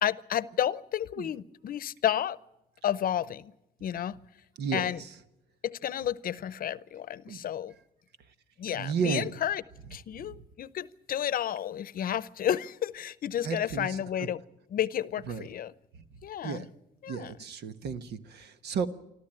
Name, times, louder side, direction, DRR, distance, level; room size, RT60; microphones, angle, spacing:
voice 1, 0.0-2.4 2.8-3.5 3.8-4.2 4.7-5.0 5.6-7.7 8.6-9.6 9.9-14.4 14.7-15.7 16.2-16.6 17.0-17.3, left 10 dB, 60° left, 0.7 m, -31 dB
voice 2, 4.6-5.1 7.3-7.4 8.7-9.4 10.2-10.3 13.4-14.3 15.3-15.5 16.4-16.7 17.1-18.9, right 6 dB, 85° right, 1.3 m, -33 dB
25.5 x 13.5 x 8.9 m
cardioid pair, 105°, 17 cm